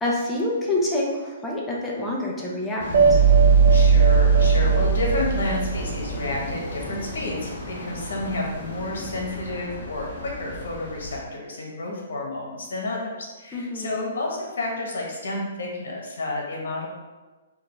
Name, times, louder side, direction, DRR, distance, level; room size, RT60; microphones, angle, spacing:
voice 1, 0.0-3.2 13.5-14.1, left 1 dB, 5° left, -4 dB, 0.6 m, -27 dB
sound 1, 2.8-11.2, left 1 dB, 40° left, 1.2 m, -34 dB
sound 2, 2.9-6.1, right 5 dB, 50° right, 0.7 m, -17 dB
voice 2, 3.7-16.9, left 2 dB, 75° left, -1 dB, 1.2 m, -30 dB
5.0 x 2.5 x 3.3 m, 1.3 s
hypercardioid pair, 170°, 0 cm